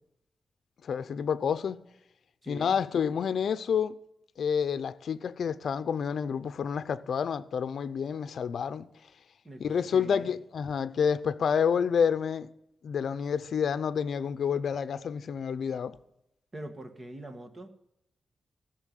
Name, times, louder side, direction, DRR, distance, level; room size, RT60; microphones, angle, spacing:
voice 1, 0.8-1.8 2.5-3.9 4.4-8.9 9.6-12.5 12.8-16.0, left 7 dB, 70° left, 0.6 m, -29 dB
voice 2, 2.4-2.8 9.4-10.3 16.5-17.7, right 1 dB, 25° right, 1.6 m, -43 dB
15.0 x 6.8 x 9.1 m
wide cardioid pair, 145°, 0 cm